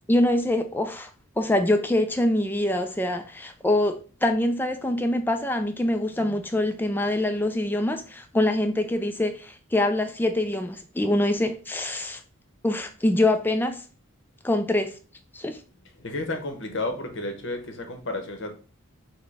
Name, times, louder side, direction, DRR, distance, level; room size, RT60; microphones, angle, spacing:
voice 1, 0.1-1.1 1.4-12.2 12.6-13.8 14.4-15.0 15.3-15.6, left 1 dB, 10° left, 0.3 m, -24 dB
voice 2, 16.0-18.5, left 2 dB, 60° left, 0.8 m, -32 dB
6.2 x 2.2 x 3.2 m
head